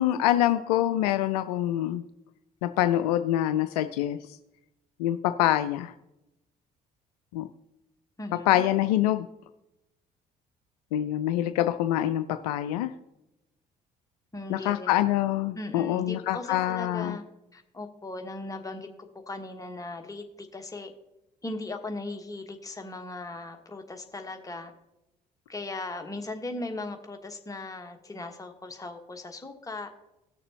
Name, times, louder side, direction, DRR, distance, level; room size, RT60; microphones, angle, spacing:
voice 1, 0.0-2.0 2.6-4.2 5.0-5.9 7.3-7.5 8.5-9.3 10.9-12.9 14.5-17.2, left 13 dB, 65° left, 11 dB, 0.4 m, -25 dB
voice 2, 8.2-8.6 14.3-15.0 15.5-17.2 17.5-18.9 19.3-20.9 21.4-24.7 25.5-29.9, left 2 dB, 15° left, 4 dB, 1.2 m, -38 dB
17.5 x 6.6 x 2.8 m, 0.91 s
figure-of-eight pair, 50°, 21 cm